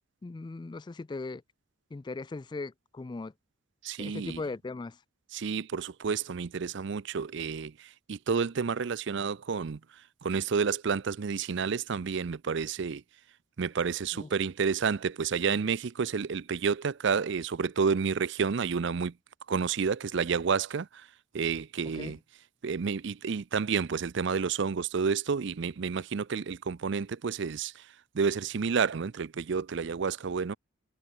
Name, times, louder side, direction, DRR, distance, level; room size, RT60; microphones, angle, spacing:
voice 1, 0.2-1.4 1.9-3.3 4.0-5.0 14.1-14.3 21.9-22.2, left 3 dB, 20° left, 0.3 m, -38 dB
voice 2, 3.8-4.4 5.3-9.8 10.2-13.0 13.6-19.1 19.5-21.1 21.3-22.2 22.6-27.9 28.1-30.6, right 5 dB, 60° right, 0.5 m, -30 dB
head